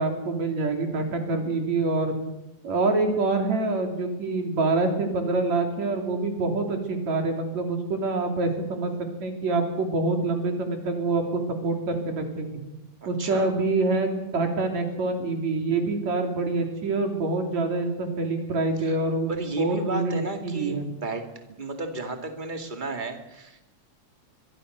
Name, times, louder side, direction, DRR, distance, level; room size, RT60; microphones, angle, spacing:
voice 1, 0.0-2.1 2.6-8.9 9.2-12.6 13.1-20.9, right 3 dB, 70° right, 4 dB, 4.4 m, -26 dB
voice 2, 13.0-13.5 18.8-19.0 19.3-23.6, right 2 dB, 15° right, 5 dB, 2.2 m, -33 dB
23.5 x 22.5 x 6.7 m, 0.95 s
omnidirectional pair, 3.3 m